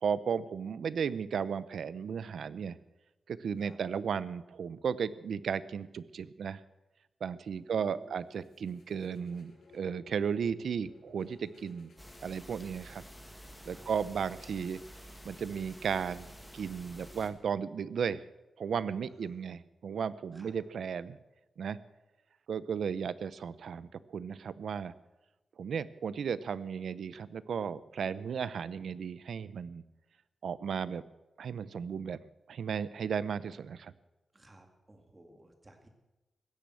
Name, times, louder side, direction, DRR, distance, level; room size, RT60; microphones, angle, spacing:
voice 1, 0.0-2.8 3.3-6.6 7.2-11.9 12.2-13.0 13.7-14.8 15.2-16.3 16.5-18.2 18.6-21.2 21.6-21.8 22.5-24.9 25.6-29.8 30.4-31.0 31.4-32.2 32.5-33.9, right 7 dB, 75° right, 17 dB, 0.6 m, -35 dB
voice 2, 7.5-8.2 13.6-13.9 19.1-19.4 20.3-20.5 34.3-35.9, right 1 dB, 20° right, 5 dB, 2.1 m, -57 dB
sound 1, 8.3-13.2, left 3 dB, 70° left, 4.2 m, -59 dB
sound 2, 12.0-17.3, equal, 5° left, 1.8 m, -50 dB
16.5 x 10.5 x 7.7 m, 1.0 s
wide cardioid pair, 165°, 0 cm